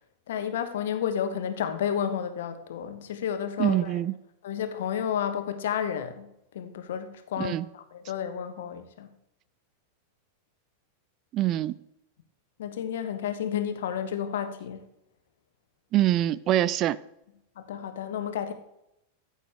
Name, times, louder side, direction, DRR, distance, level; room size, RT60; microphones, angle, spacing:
voice 1, 0.3-3.9 4.4-6.3 6.5-9.1 12.6-14.8 17.7-18.5, left 8 dB, 60° left, 1.2 m, -31 dB
voice 2, 3.6-4.1 7.4-7.6 11.3-11.7 15.9-17.0, right 13 dB, 35° right, 0.4 m, -24 dB
14.0 x 8.1 x 3.5 m
figure-of-eight pair, 90°, 0 cm